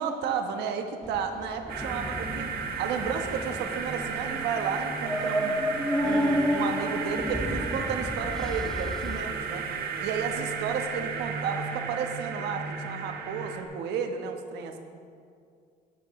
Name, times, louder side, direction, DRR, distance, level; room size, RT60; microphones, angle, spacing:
voice 1, 0.0-5.6 6.0-9.7 10.0-14.8, right 6 dB, 85° right, 5 dB, 1.2 m, -32 dB
sound 1, 1.0-9.2, equal, 5° left, 0.6 m, -31 dB
sound 2, 1.7-13.6, right 6 dB, 65° right, 1.4 m, -34 dB
16.5 x 10.5 x 3.2 m, 2.3 s
cardioid pair, 110°, 17 cm